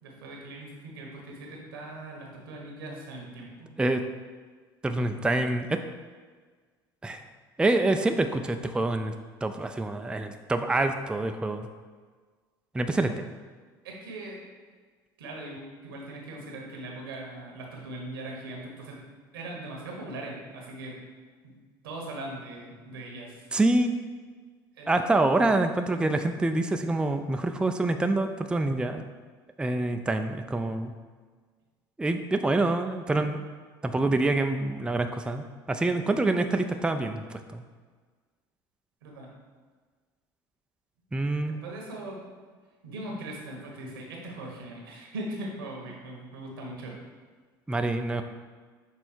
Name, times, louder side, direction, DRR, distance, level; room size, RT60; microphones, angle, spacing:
voice 1, 0.0-3.7 13.8-14.4 15.2-19.0 19.3-20.9 21.4-21.5 21.8-23.4 24.8-25.0 39.0-39.3 41.6-42.2 42.8-46.9, right 1 dB, 90° right, -1 dB, 1.3 m, -40 dB
voice 2, 4.8-5.8 7.0-7.2 7.6-9.1 9.4-11.7 12.7-13.3 23.5-24.0 24.9-29.0 29.6-30.9 32.0-33.4 33.8-37.6 41.1-41.6 47.7-48.2, right 2 dB, 10° right, 6 dB, 0.4 m, -26 dB
6.3 x 3.4 x 4.5 m, 1.5 s
hypercardioid pair, 75°, 12 cm